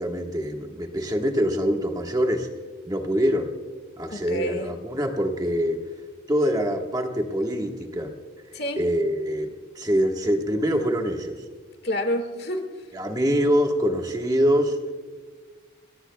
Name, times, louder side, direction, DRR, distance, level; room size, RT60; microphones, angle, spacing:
voice 1, 0.0-2.5 2.8-3.5 4.0-5.8 6.3-8.1 8.8-11.4 12.9-14.8, equal, 20° right, 3 dB, 1.4 m, -24 dB
voice 2, 4.1-4.7 8.5-8.8 11.8-12.7, left 1 dB, 55° left, 6 dB, 1.9 m, -28 dB
28.5 x 21.5 x 2.3 m, 1.5 s
head